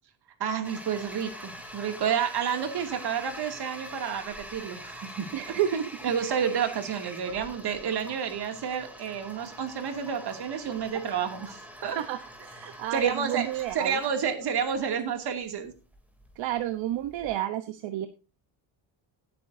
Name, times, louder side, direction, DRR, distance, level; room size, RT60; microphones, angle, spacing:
voice 1, 0.4-5.3 6.0-12.0 12.9-15.7, right 7 dB, 60° right, 6 dB, 2.5 m, -30 dB
Toilet flush, 0.6-17.4, equal, 5° right, 2.9 m, -45 dB
voice 2, 5.3-6.1 12.0-14.0 16.4-18.1, right 12 dB, 80° right, 9 dB, 1.0 m, -30 dB
16.0 x 9.3 x 2.7 m, 0.31 s
cardioid pair, 120°, 45 cm